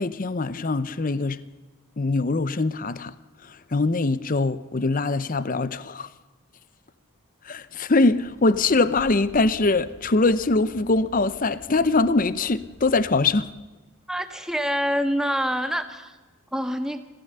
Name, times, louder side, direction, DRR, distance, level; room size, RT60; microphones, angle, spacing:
voice 1, 0.0-1.4 2.0-3.1 3.4-6.1 7.4-13.5, left 3 dB, 40° left, 0.7 m, -23 dB
sound 1, 7.9-13.5, equal, 15° left, 2.1 m, -49 dB
voice 2, 14.1-16.2 16.5-17.0, equal, ahead, 1.5 m, -26 dB
26.0 x 16.5 x 6.7 m
head